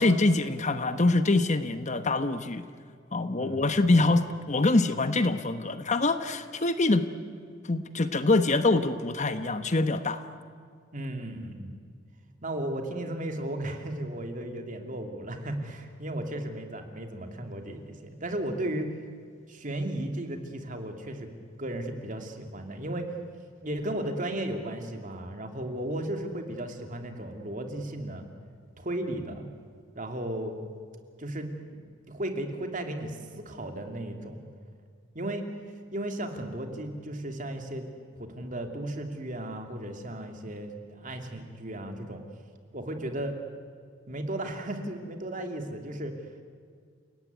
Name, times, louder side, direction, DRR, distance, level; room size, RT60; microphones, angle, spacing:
voice 1, 0.0-2.6 3.1-7.0 7.7-10.2, left 2 dB, 35° left, 10 dB, 1.0 m, -24 dB
voice 2, 10.9-11.8 12.4-18.9 19.5-21.3 21.6-23.1 23.6-28.3 28.8-29.5 29.9-30.5 31.2-34.4 35.1-35.5 35.9-37.9 38.2-42.2 42.7-43.3 44.1-46.1, right 1 dB, 40° right, 5 dB, 2.7 m, -35 dB
30.0 x 18.0 x 9.5 m, 2.1 s
head